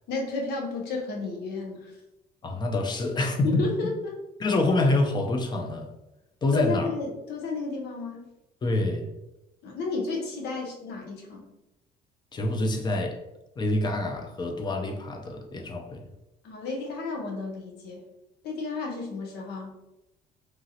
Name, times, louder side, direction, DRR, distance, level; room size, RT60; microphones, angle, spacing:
voice 1, 0.1-1.9 3.4-4.1 6.5-8.3 9.6-11.5 16.4-18.0 18.4-19.7, left 3 dB, 75° left, 0 dB, 0.8 m, -32 dB
voice 2, 2.4-3.7 4.4-5.9 6.4-6.9 8.6-9.1 12.3-13.2 13.6-16.1, left 2 dB, 25° left, 4 dB, 0.5 m, -26 dB
3.0 x 2.4 x 2.7 m, 0.93 s
cardioid pair, 110°, 17 cm